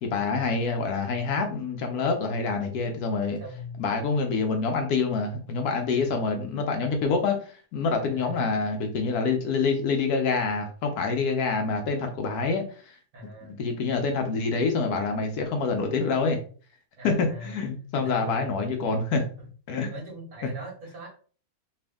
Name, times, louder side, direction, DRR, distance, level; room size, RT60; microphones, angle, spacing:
voice 1, 0.0-3.4 3.8-7.4 7.7-12.6 13.6-16.4 17.0-19.2 19.7-19.9, left 4 dB, 70° left, 4 dB, 1.1 m, -26 dB
voice 2, 3.4-3.9 6.0-6.2 8.1-8.4 13.1-13.6 17.0-17.6 17.9-18.6 19.9-21.1, equal, 55° right, -1 dB, 1.6 m, -41 dB
3.4 x 2.6 x 3.4 m, 0.41 s
omnidirectional pair, 1.8 m